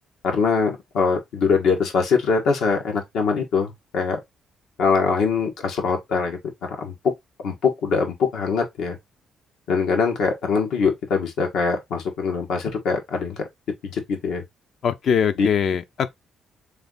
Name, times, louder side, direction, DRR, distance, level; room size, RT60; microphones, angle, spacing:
voice 1, 0.2-4.2 4.8-6.4 6.8-6.9 7.4-9.0 9.7-13.4 13.8-14.4 15.4-15.5, left 5 dB, 80° left, 1.6 m, -23 dB
voice 2, 14.8-16.1, left 7 dB, 60° left, 0.6 m, -22 dB
3.6 x 3.3 x 3.9 m
cardioid pair, 90°, 0 cm